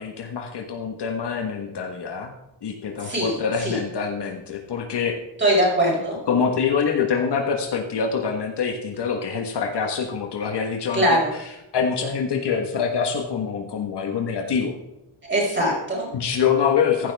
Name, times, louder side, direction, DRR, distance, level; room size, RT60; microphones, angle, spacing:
voice 1, 0.0-2.3 2.6-5.2 6.3-11.2 11.7-14.8 16.1-17.1, left 6 dB, 55° left, 3 dB, 1.5 m, -25 dB
voice 2, 3.0-3.3 3.6-3.8 5.4-6.2 10.9-11.3 15.2-16.1, right 1 dB, 20° right, -3 dB, 5.5 m, -21 dB
15.0 x 11.5 x 3.5 m, 0.93 s
wide cardioid pair, 170°, 50 cm